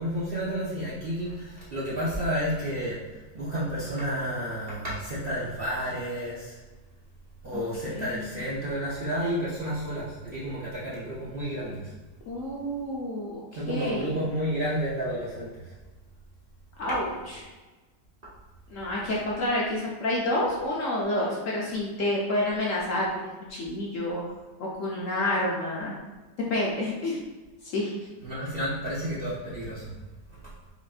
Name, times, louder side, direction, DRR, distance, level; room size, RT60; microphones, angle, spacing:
voice 1, 0.0-3.0 3.3-6.6 7.4-11.9 13.5-15.5 28.2-29.9, equal, 50° right, -8 dB, 0.7 m, -31 dB
voice 2, 7.9-8.4 12.3-14.1 16.8-17.5 18.7-24.2 24.6-25.9 26.5-27.2 27.7-27.9, left 1 dB, 65° left, -5 dB, 0.9 m, -29 dB
4.9 x 2.5 x 2.4 m, 1.2 s
omnidirectional pair, 1.8 m